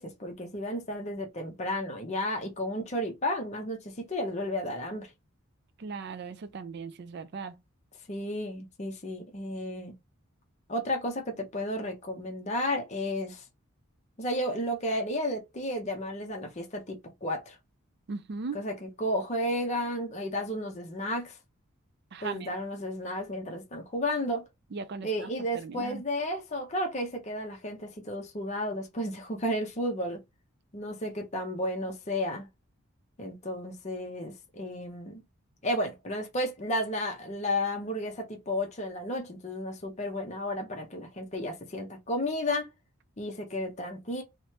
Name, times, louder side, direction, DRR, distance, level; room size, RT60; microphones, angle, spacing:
voice 1, 0.0-5.1 8.1-9.9 10.7-13.4 14.2-17.6 18.5-21.4 22.2-24.5 25.0-30.2 30.7-32.5 33.2-35.2 35.6-42.7 43.2-44.2, left 1 dB, 30° left, 0.5 m, -33 dB
voice 2, 5.8-7.6 18.1-18.7 22.1-22.5 24.7-25.3 25.5-26.0, right 4 dB, 50° right, 0.3 m, -38 dB
3.0 x 2.1 x 2.8 m
head